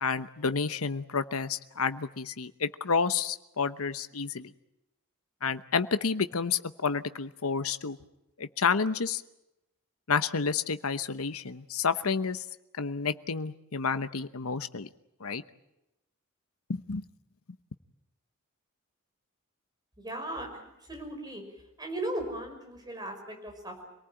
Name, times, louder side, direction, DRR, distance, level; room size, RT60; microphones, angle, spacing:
voice 1, 0.0-4.5 5.4-8.0 8.4-9.2 10.1-12.4 12.8-14.9 15.2-15.4 16.7-17.0, left 5 dB, 85° left, 11 dB, 0.9 m, -30 dB
voice 2, 20.0-21.4 21.8-23.9, right 1 dB, 20° right, 3 dB, 5.8 m, -37 dB
26.0 x 19.0 x 9.0 m, 0.90 s
head